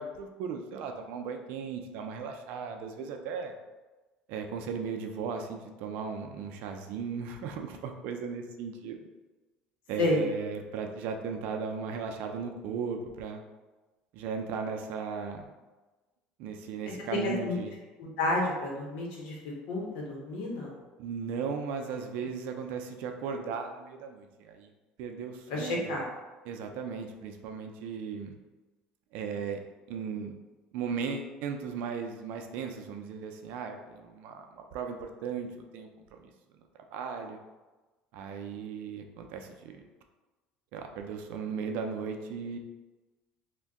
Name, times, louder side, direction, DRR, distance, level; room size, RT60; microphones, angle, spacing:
voice 1, 0.0-3.5 4.3-9.0 9.9-13.4 14.1-15.5 16.4-17.7 21.0-24.7 25.0-26.0 26.4-28.4 29.1-29.6 29.9-30.3 30.7-36.3 36.9-37.4 38.1-39.8 40.7-42.6, right 6 dB, 70° right, 4 dB, 0.4 m, -37 dB
voice 2, 17.1-17.5 18.0-19.4 19.7-20.7 25.5-26.1, left 1 dB, 75° left, -2 dB, 0.9 m, -30 dB
2.6 x 2.2 x 3.5 m, 1.2 s
cardioid pair, 130°, 3 cm